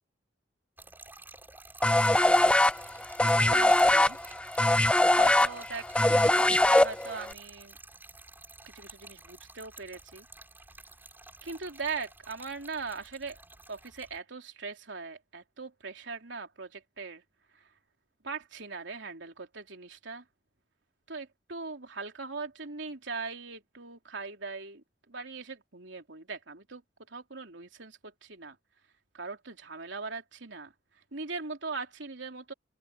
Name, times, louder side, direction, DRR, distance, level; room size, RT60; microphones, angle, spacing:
Trickle dribble / Fill (with liquid), 0.8-14.2, right 2 dB, 10° right, 7.1 m, -51 dB
sound 1, 1.8-7.3, left 1 dB, 5° left, 0.6 m, -22 dB
voice 1, 3.2-4.2 5.2-7.8 8.7-10.3 11.4-13.4 13.7-17.2 17.5-17.7 18.2-20.2 21.1-26.8 27.1-28.6 29.1-30.7 31.1-32.5, right 4 dB, 90° right, 3.1 m, -40 dB
open air
head